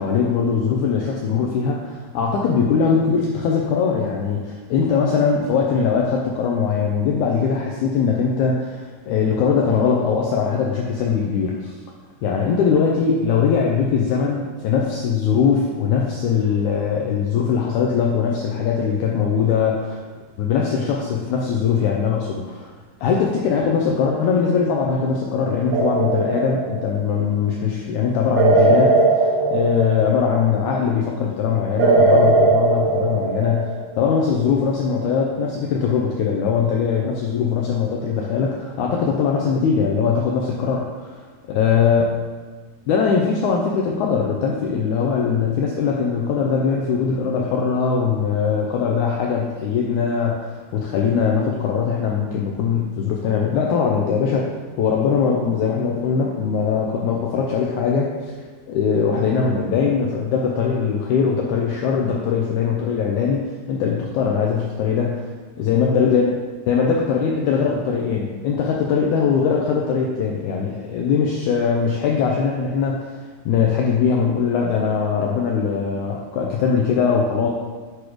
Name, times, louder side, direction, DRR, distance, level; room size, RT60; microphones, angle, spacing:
voice 1, 0.0-11.7 12.2-20.0 20.4-22.7 23.0-41.2 41.5-42.0 42.9-58.4 58.7-65.3 65.6-66.3 66.7-73.1 73.4-77.5, left 6 dB, 85° left, -1 dB, 1.7 m, -21 dB
sound 1, 25.7-27.1 28.4-30.5 31.8-34.0, right 3 dB, 75° right, 2.2 m, -18 dB
8.3 x 3.1 x 4.8 m, 1.4 s
omnidirectional pair, 4.1 m